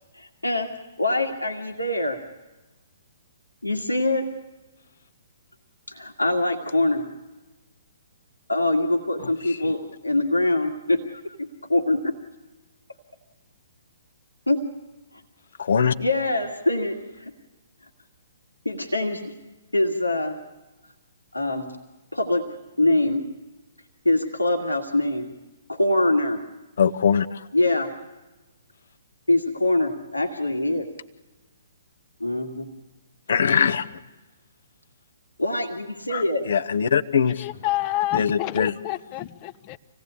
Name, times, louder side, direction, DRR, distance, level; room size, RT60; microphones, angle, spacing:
voice 1, 0.1-0.7 1.0-2.2 3.6-4.3 5.9-7.1 8.5-12.1 14.5-14.6 16.0-17.3 18.7-19.3 19.7-20.4 21.3-21.7 22.1-22.4 22.8-23.2 24.1-25.3 25.7-26.4 27.5-27.9 29.3-30.9 32.2-32.7 35.4-36.4, left 2 dB, 85° left, 2.0 m, -24 dB
voice 2, 15.6-15.9 26.8-27.4 33.3-33.9 36.1-37.4 38.1-38.7, left 7 dB, 60° left, 1.0 m, -22 dB
voice 3, 37.4-39.8, left 16 dB, 30° left, 0.8 m, -28 dB
26.5 x 17.5 x 8.5 m
figure-of-eight pair, 125°, 0 cm